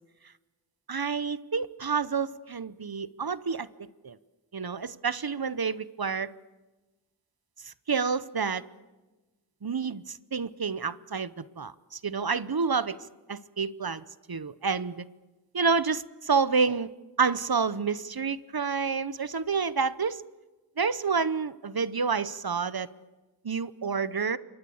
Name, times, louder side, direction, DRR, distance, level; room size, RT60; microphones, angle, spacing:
voice 1, 0.9-4.2 4.5-6.3 7.6-8.6 9.6-13.0 13.3-15.0 15.5-16.9 17.2-20.2 20.8-22.9 23.4-24.4, right 5 dB, 55° right, 16 dB, 0.8 m, -29 dB
28.5 x 23.5 x 7.1 m, 1.2 s
wide cardioid pair, 40°, 43 cm